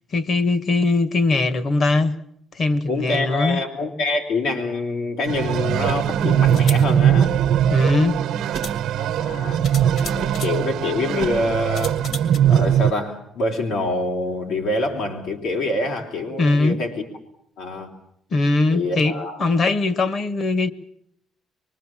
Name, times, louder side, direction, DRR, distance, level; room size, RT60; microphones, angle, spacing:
voice 1, 0.1-2.1 2.5-3.6 7.7-8.2 16.4-16.8 18.3-20.7, left 3 dB, 40° left, 1.3 m, -20 dB
voice 2, 2.9-7.3 9.0-9.7 10.0-12.0 12.5-17.0 17.6-17.9 18.7-19.4, left 2 dB, 85° left, 3.3 m, -26 dB
sound 1, 5.3-12.9, right 9 dB, 80° right, 1.0 m, -20 dB
sound 2, 5.4-5.5 6.4-6.8 8.0-8.1 8.5-8.8 9.6-10.6 11.7-12.4, left 4 dB, 60° left, 2.6 m, -35 dB
25.5 x 23.0 x 7.4 m
cardioid pair, 170°, 0 cm